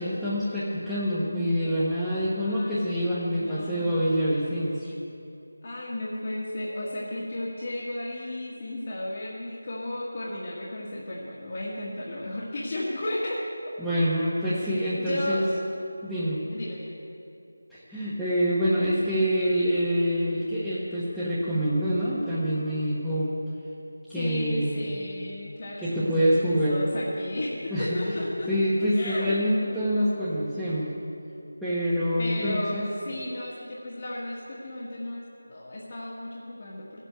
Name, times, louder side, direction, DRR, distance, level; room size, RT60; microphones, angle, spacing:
voice 1, 0.0-4.9 13.8-15.4 16.0-16.4 17.7-23.3 24.1-25.0 25.8-26.8 27.7-28.1 28.5-30.9 31.6-32.8, equal, ahead, -15 dB, 1.3 m, -26 dB
voice 2, 2.4-3.9 5.6-13.7 14.9-15.5 16.5-17.0 24.1-28.5 28.9-29.4 32.2-37.0, left 1 dB, 40° left, -5 dB, 1.8 m, -34 dB
15.5 x 8.2 x 7.9 m, 2.8 s
figure-of-eight pair, 170°, 0 cm